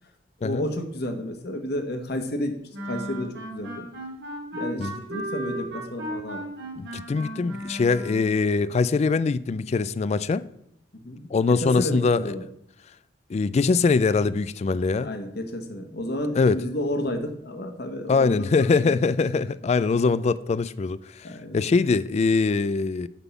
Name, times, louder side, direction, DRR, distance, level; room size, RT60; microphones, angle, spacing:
voice 1, 0.4-2.5 2.9-3.8 4.5-6.4 11.0-11.2 11.5-12.4 15.0-19.0 21.2-21.6, left 1 dB, 60° left, 1.2 m, -31 dB
sound 1, 2.7-8.4, equal, 75° right, 3.0 m, -35 dB
voice 2, 6.8-10.4 11.3-12.4 13.3-15.1 16.4-16.6 18.1-21.0 21.5-23.1, left 4 dB, 35° left, 0.3 m, -22 dB
9.7 x 3.7 x 7.0 m
head